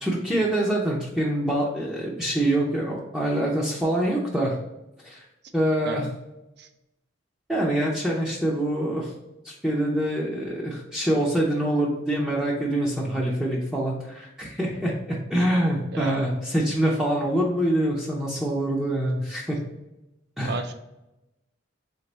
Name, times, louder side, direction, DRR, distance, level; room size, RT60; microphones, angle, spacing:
voice 1, 0.0-4.6 5.0-5.2 5.5-6.1 7.5-9.1 9.4-19.6 20.4-20.6, right 1 dB, ahead, -4 dB, 0.6 m, -25 dB
voice 2, 15.9-16.3 20.4-20.7, right 4 dB, 55° right, 7 dB, 0.5 m, -32 dB
3.4 x 3.3 x 3.9 m, 0.94 s
head